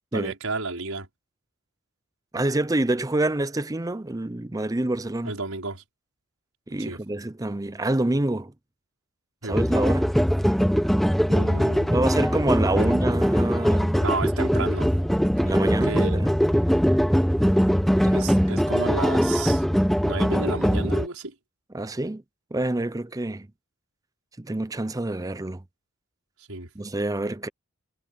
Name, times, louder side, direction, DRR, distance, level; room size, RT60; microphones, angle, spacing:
voice 1, 0.1-1.1 5.2-5.8 6.8-7.0 9.4-9.6 11.3-11.9 12.8-12.9 14.0-14.9 15.6-16.2 18.1-19.6 20.0-21.3 26.5-26.7, right 3 dB, 80° right, 5.3 m, -32 dB
voice 2, 2.3-5.3 6.7-8.5 9.4-10.1 11.9-13.9 15.4-16.4 18.0-18.3 21.7-22.2 22.5-23.5 24.4-25.6 26.8-27.5, right 2 dB, 15° right, 0.6 m, -27 dB
sound 1, 9.5-21.1, equal, ahead, 1.1 m, -21 dB
head